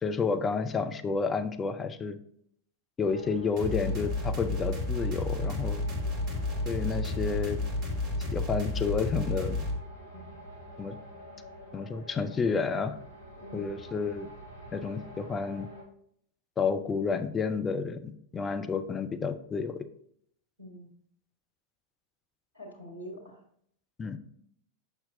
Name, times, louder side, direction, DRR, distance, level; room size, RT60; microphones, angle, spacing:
voice 1, 0.0-2.2 3.0-5.8 6.7-7.6 8.3-9.6 10.8-11.0 11.7-12.9 13.5-14.3 14.7-15.7 16.6-19.9 24.0-24.2, left 5 dB, 20° left, 9 dB, 0.5 m, -30 dB
sound 1, 3.0-15.8, right 1 dB, 70° left, 1.6 m, -48 dB
sound 2, 3.6-9.8, left 2 dB, 35° right, 1.5 m, -31 dB
voice 2, 13.4-13.8 20.6-20.9 22.5-23.4, equal, 90° right, -1 dB, 1.3 m, -45 dB
7.2 x 5.8 x 2.7 m, 0.67 s
figure-of-eight pair, 90°, 0 cm